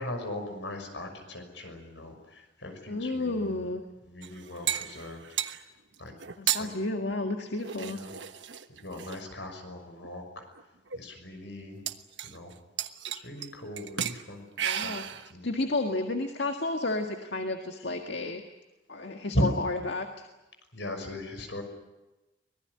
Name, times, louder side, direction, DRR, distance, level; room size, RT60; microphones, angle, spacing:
voice 1, 0.0-3.6 4.0-5.2 6.0-6.1 6.6-6.7 7.8-8.1 8.7-10.4 10.9-11.8 12.2-12.5 13.1-15.5 19.0-19.1 19.3-19.4 20.7-21.6, equal, 85° left, 6 dB, 6.1 m, -38 dB
voice 2, 2.9-3.8 6.4-8.0 14.6-15.1 15.4-18.4 18.9-20.3, left 2 dB, 70° left, 5 dB, 1.9 m, -31 dB
sound 1, 4.2-5.6 6.2-6.6 7.6-9.2 10.0-10.1 10.6-10.7 10.9-11.0 11.9-12.5 12.8-13.5 13.8-14.2 14.6-15.3, right 10 dB, 80° right, 1.2 m, -33 dB
24.5 x 19.5 x 9.8 m, 1.0 s
head